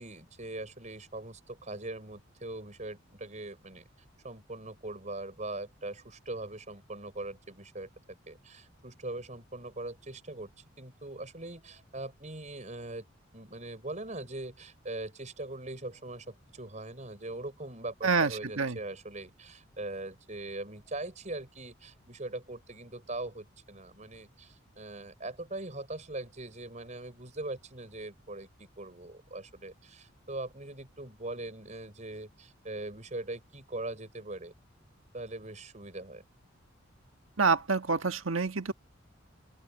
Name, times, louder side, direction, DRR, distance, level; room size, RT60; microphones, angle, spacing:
voice 1, 0.0-3.8 4.2-7.9 8.3-10.5 10.8-13.1 13.3-34.5 35.1-36.2, right 2 dB, 35° right, 5.7 m, -41 dB
voice 2, 37.4-38.7, right 4 dB, 85° right, 1.5 m, -27 dB
open air
head